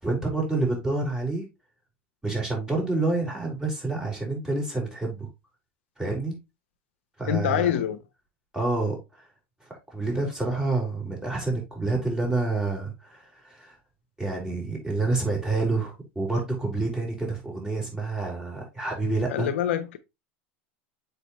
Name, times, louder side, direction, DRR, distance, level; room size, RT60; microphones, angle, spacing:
voice 1, 0.0-1.5 2.2-5.3 6.0-6.3 7.2-7.7 8.5-9.2 9.7-13.7 14.2-19.5, right 3 dB, 10° right, 4.6 m, -28 dB
voice 2, 7.3-8.0 19.3-20.0, left 10 dB, 80° left, 0.7 m, -25 dB
6.7 x 5.8 x 3.1 m
hypercardioid pair, 100°, 7 cm